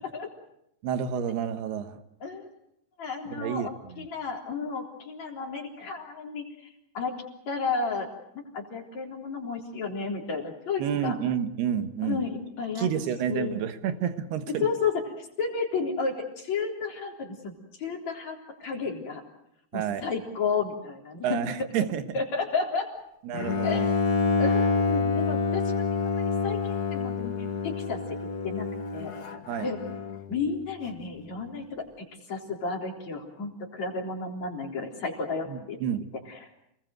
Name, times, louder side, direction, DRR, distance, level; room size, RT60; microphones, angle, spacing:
voice 1, 0.8-2.0 3.3-4.1 10.8-12.2 12.8-14.7 19.7-20.1 21.2-22.2 23.2-23.9 29.5-29.7 35.5-36.1, right 9 dB, 80° right, 3.3 m, -30 dB
voice 2, 3.0-6.5 6.9-7.1 7.5-8.1 8.3-11.2 12.0-12.9 13.3-13.6 14.6-19.2 19.7-21.4 22.1-22.9 23.6-23.9 24.4-27.4 27.6-28.2 28.4-28.7 28.9-29.1 29.6-29.8 30.3-35.8 36.3-36.4, left 4 dB, 45° left, 4.8 m, -32 dB
Bowed string instrument, 23.3-30.3, left 4 dB, 85° left, 0.8 m, -27 dB
29.5 x 20.0 x 7.8 m
omnidirectional pair, 4.7 m